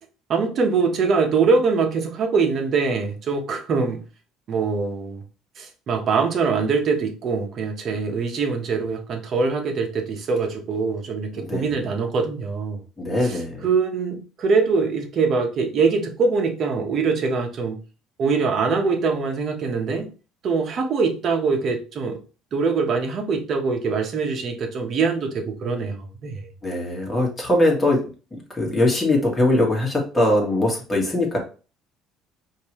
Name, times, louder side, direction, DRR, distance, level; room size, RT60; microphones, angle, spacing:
voice 1, 0.3-4.0 4.5-5.2 5.6-12.8 13.2-17.8 18.2-20.1 20.4-22.2 22.5-26.5, right 4 dB, 45° right, 1.1 m, -23 dB
voice 2, 11.3-11.8 13.0-13.7 26.6-28.0 28.3-31.4, left 1 dB, 15° left, 1.6 m, -21 dB
5.2 x 2.8 x 3.1 m
cardioid pair, 125°, 0 cm